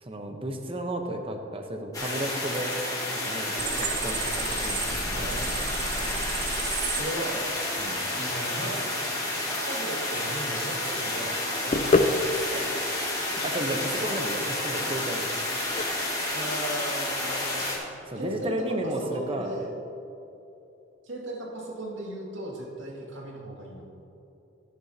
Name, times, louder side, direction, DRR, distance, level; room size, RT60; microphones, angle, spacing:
voice 1, 0.0-2.7 3.1-5.0 7.8-8.0 12.5-15.4 18.1-19.6, right 1 dB, 30° right, 4 dB, 0.9 m, -33 dB
sound 1, 1.9-17.8, left 1 dB, 20° left, 1.8 m, -30 dB
sound 2, 3.6-7.0, right 4 dB, 60° right, 1.2 m, -32 dB
voice 2, 5.1-5.6 7.0-7.5 8.2-8.9 9.7-11.4 11.6-12.1 16.3-17.8 18.1-19.7 21.0-23.9, right 1 dB, 75° right, -3 dB, 2.2 m, -36 dB
sound 3, 10.6-18.3, left 3 dB, 35° left, 0.4 m, -30 dB
12.5 x 9.8 x 2.8 m, 3.0 s
head